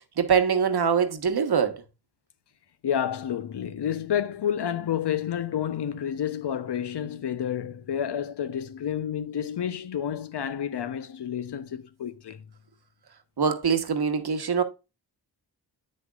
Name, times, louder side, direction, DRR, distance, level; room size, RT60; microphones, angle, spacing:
voice 1, 0.2-1.8 13.4-14.6, right 6 dB, 55° right, 1.3 m, -23 dB
voice 2, 2.8-12.4, left 9 dB, 60° left, 0.8 m, -30 dB
7.5 x 6.5 x 2.4 m
supercardioid pair, 40°, 46 cm